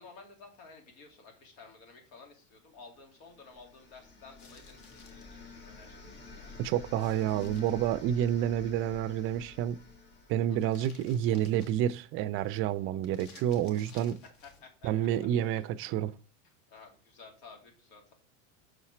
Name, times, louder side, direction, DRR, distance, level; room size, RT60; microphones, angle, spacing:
voice 1, 0.0-6.7 10.5-10.6 14.4-14.9 15.4-15.6 16.4-18.1, left 4 dB, 75° left, 2.5 m, -54 dB
sound 1, 3.2-11.2, left 4 dB, 25° left, 1.7 m, -50 dB
sound 2, 4.4-5.3 7.0-8.4 10.6-12.1 13.0-14.7, left 4 dB, 50° left, 1.6 m, -56 dB
voice 2, 6.6-9.8 10.3-14.2 14.8-16.1, right 11 dB, 35° right, 0.4 m, -29 dB
6.5 x 4.2 x 4.9 m
supercardioid pair, 125°, 37 cm